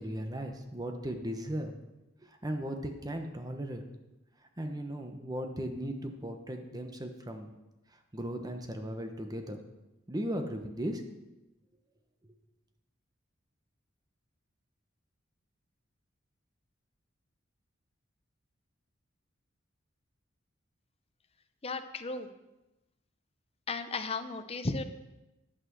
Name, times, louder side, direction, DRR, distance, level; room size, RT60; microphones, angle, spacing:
voice 1, 0.0-1.7 2.2-3.8 4.6-7.5 8.1-9.6 10.1-11.0, equal, 20° right, 5 dB, 1.0 m, -37 dB
voice 2, 21.6-22.3 23.7-24.8, left 3 dB, 30° left, 8 dB, 0.7 m, -35 dB
11.0 x 6.1 x 6.1 m, 0.99 s
head